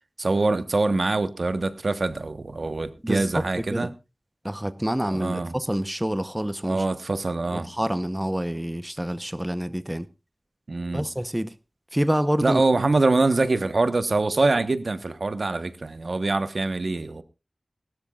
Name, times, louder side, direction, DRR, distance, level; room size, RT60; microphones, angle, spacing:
voice 1, 0.2-3.9 5.1-5.5 6.6-7.7 10.7-11.0 12.4-17.2, right 3 dB, 70° right, 1.1 m, -24 dB
voice 2, 3.0-3.9 4.4-6.8 7.5-10.1 10.9-11.5 11.9-12.6, equal, 10° right, 0.8 m, -27 dB
20.5 x 12.5 x 2.4 m
wide cardioid pair, 60°, 0 cm